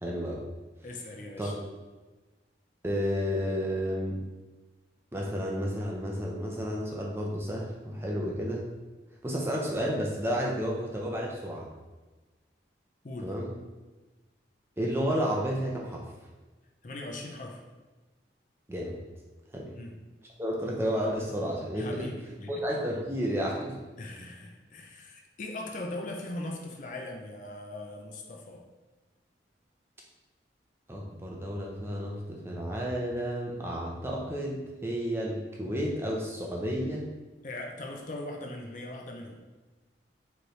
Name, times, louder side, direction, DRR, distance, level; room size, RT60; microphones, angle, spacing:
voice 1, 0.0-0.4 1.4-1.7 2.8-4.2 5.1-8.7 9.2-11.7 13.2-13.5 14.8-16.0 18.7-19.0 19.5-19.7 20.4-21.9 22.5-23.7 30.9-37.1, equal, 15° right, -2 dB, 0.6 m, -31 dB
voice 2, 0.8-1.6 13.0-13.3 16.8-17.6 19.7-20.0 21.7-22.6 24.0-28.6 37.4-39.4, left 2 dB, 45° left, 1 dB, 0.5 m, -40 dB
4.9 x 3.2 x 3.1 m, 1.2 s
head